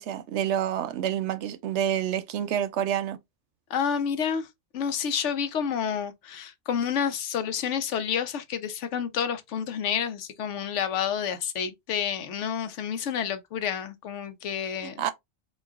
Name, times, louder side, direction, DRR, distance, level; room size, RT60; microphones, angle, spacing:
voice 1, 0.0-3.2 14.8-15.1, right 10 dB, 75° right, 0.9 m, -28 dB
voice 2, 3.7-4.5 4.7-15.1, left 8 dB, 85° left, 1.0 m, -29 dB
4.1 x 2.4 x 3.5 m
omnidirectional pair, 1.2 m